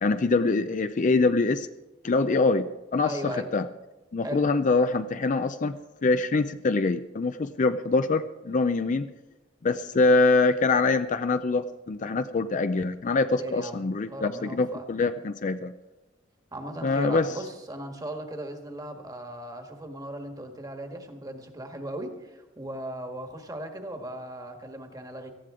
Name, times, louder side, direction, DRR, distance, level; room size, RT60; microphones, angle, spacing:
voice 1, 0.0-1.7 2.0-3.7 4.1-9.1 9.6-15.7 16.8-17.3, left 3 dB, 40° left, 11 dB, 0.5 m, -24 dB
voice 2, 3.0-3.5 4.2-4.4 13.4-14.9 16.5-25.3, right 1 dB, 20° right, 5 dB, 1.5 m, -37 dB
18.0 x 14.0 x 3.7 m, 1.1 s
head